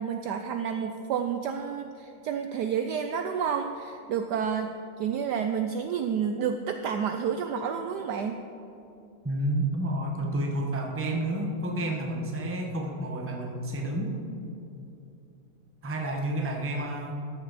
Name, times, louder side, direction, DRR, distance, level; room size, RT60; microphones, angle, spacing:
voice 1, 0.0-4.7 5.0-8.4, right 7 dB, 75° right, 6 dB, 0.9 m, -30 dB
voice 2, 9.2-14.1 15.8-17.1, right 1 dB, 10° right, 1 dB, 0.6 m, -30 dB
13.5 x 9.7 x 4.1 m, 2.7 s
omnidirectional pair, 2.2 m